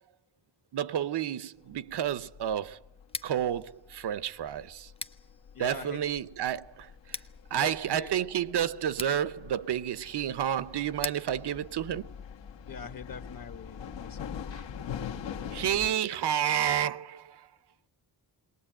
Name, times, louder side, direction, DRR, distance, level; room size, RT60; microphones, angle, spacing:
voice 1, 0.7-2.8 3.2-4.9 5.6-6.9 7.5-12.1 15.5-17.5, right 10 dB, 65° right, 0.7 m, -30 dB
sound 1, 1.7-15.9, left 7 dB, 75° left, 1.3 m, -44 dB
Scissors, 3.0-12.8, left 2 dB, 15° left, 0.7 m, -46 dB
voice 2, 5.5-6.0 7.5-8.1 12.7-14.6, left 6 dB, 50° left, 1.3 m, -43 dB
21.0 x 19.0 x 8.8 m
cardioid pair, 110°, 44 cm